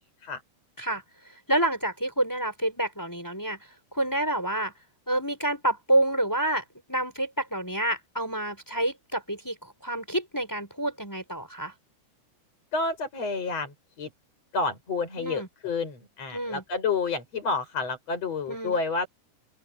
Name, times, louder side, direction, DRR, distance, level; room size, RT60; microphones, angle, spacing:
voice 1, 1.5-4.7 5.1-11.7 15.2-15.5 16.3-16.6 18.5-18.8, right 1 dB, 5° left, 5.6 m, -28 dB
voice 2, 12.7-14.1 14.5-19.1, left 4 dB, 55° left, 8.1 m, -29 dB
open air
omnidirectional pair, 3.5 m